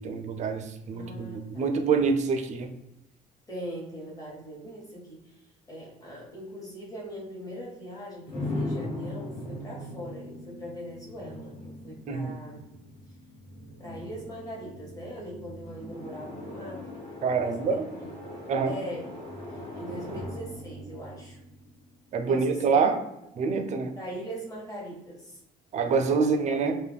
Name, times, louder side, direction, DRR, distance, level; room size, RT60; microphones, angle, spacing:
voice 1, 0.0-2.7 12.1-12.3 17.2-17.8 18.5-18.7 22.1-22.9 23.4-23.9 25.7-26.7, right 5 dB, 45° right, 6 dB, 0.4 m, -26 dB
voice 2, 0.9-1.8 3.5-12.6 13.8-17.1 17.4-18.3 18.6-19.1 19.5-21.4 22.2-22.8 23.9-25.4 25.9-26.4, equal, 20° left, -3 dB, 1.0 m, -41 dB
sound 1, 8.3-22.1, left 1 dB, 45° left, 1.2 m, -39 dB
2.3 x 2.1 x 3.3 m, 0.89 s
cardioid pair, 110°, 17 cm